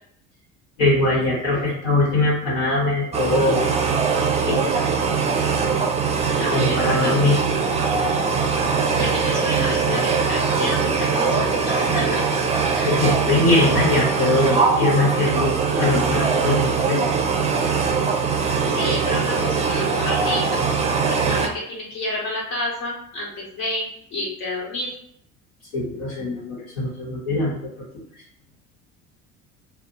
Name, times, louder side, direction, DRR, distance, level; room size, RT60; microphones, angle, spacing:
voice 1, 0.8-3.6 4.5-4.8 6.5-7.4 12.8-17.1 25.7-27.6, left 2 dB, 70° left, -6 dB, 1.2 m, -21 dB
sound 1, 3.1-21.5, right 5 dB, 15° right, 0.5 m, -21 dB
voice 2, 6.4-7.4 8.9-12.2 12.7-13.0 18.7-20.6 21.1-24.9, left 1 dB, 55° left, -3 dB, 1.3 m, -30 dB
2.6 x 2.1 x 3.9 m, 0.71 s
figure-of-eight pair, 60°, 40 cm